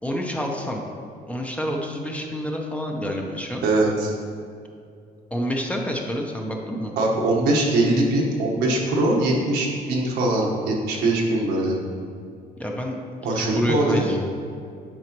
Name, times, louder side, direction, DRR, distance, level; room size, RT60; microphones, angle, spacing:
voice 1, 0.0-0.8 1.3-3.6 5.3-6.9 12.6-13.0 13.3-14.2, equal, 10° left, 0 dB, 0.7 m, -28 dB
voice 2, 3.6-4.1 7.0-11.8 13.2-14.2, right 2 dB, 80° right, -2 dB, 1.4 m, -22 dB
8.9 x 4.9 x 3.1 m, 2.4 s
cardioid pair, 110°, 17 cm